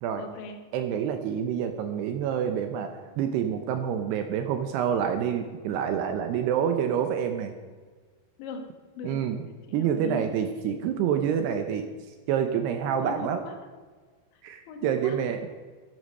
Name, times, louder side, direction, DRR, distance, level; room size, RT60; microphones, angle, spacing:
voice 1, 0.2-0.6 8.4-9.2 9.7-10.3 13.0-13.6 14.3-15.2, left 4 dB, 90° left, 5 dB, 3.7 m, -40 dB
voice 2, 0.7-7.5 9.0-9.4 9.7-11.9 12.3-13.4 14.4-15.5, right 8 dB, 75° right, 7 dB, 2.7 m, -27 dB
12.5 x 11.5 x 5.4 m, 1.5 s
omnidirectional pair, 5.1 m